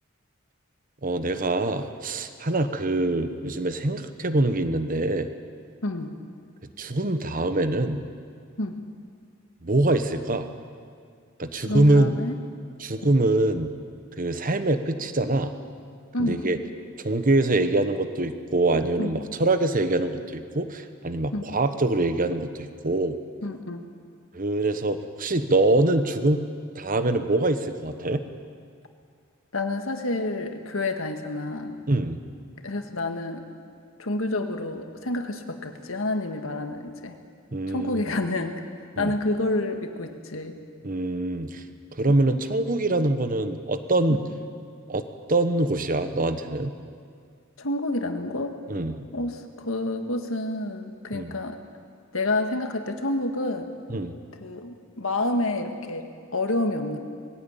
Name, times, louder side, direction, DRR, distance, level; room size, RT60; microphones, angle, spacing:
voice 1, 1.0-5.3 6.8-8.0 9.6-10.5 11.4-12.1 12.8-13.7 14.1-15.5 16.2-16.6 17.0-23.2 24.3-26.5 26.7-28.2 31.9-32.2 37.5-38.1 39.0-39.1 40.8-41.6 41.9-44.2 44.9-46.7 48.7-49.0 51.1-51.3 53.9-54.1, right 2 dB, 40° right, 9 dB, 1.1 m, -24 dB
voice 2, 11.5-12.4 13.0-13.1 16.1-16.5 19.0-19.1 21.3-21.5 23.4-23.8 29.5-31.8 32.6-33.4 34.0-37.2 37.7-38.5 39.0-40.6 44.1-44.2 47.6-48.5 49.1-51.6 52.1-53.7 54.4-57.0, left 2 dB, 70° left, 5 dB, 1.7 m, -29 dB
20.5 x 15.5 x 9.0 m, 2.2 s
head